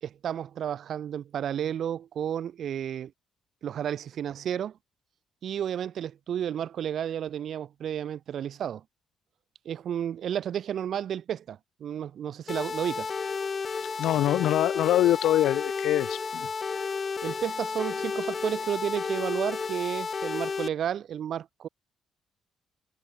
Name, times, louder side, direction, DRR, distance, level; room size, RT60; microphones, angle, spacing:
voice 1, 0.0-3.1 3.6-4.8 5.4-8.8 9.6-13.1 17.2-21.7, right 9 dB, 65° right, 0.8 m, -32 dB
sound 1, 12.5-20.7, left 5 dB, 35° left, 0.6 m, -32 dB
voice 2, 14.0-16.5, left 13 dB, 85° left, 0.8 m, -24 dB
cardioid pair, 90°, 0 cm